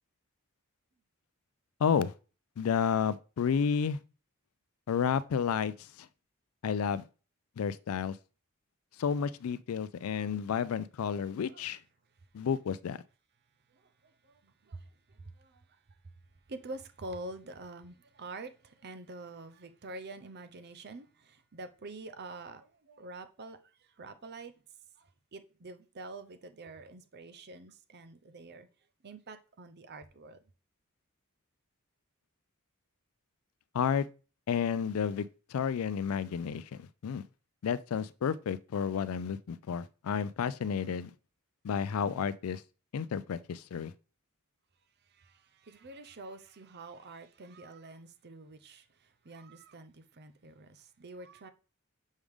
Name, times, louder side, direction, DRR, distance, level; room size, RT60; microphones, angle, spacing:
voice 1, 1.8-2.1 2.6-4.0 4.9-6.1 6.6-7.0 7.6-8.2 9.0-11.8 12.3-13.0 33.7-34.1 34.5-37.2 37.6-41.1 41.6-42.6 42.9-43.9, left 7 dB, 75° left, 0.4 m, -31 dB
voice 2, 13.7-16.1 16.5-24.5 25.0-28.7 29.0-30.4 45.0-51.5, right 2 dB, 50° right, 0.7 m, -47 dB
6.4 x 4.9 x 3.5 m
head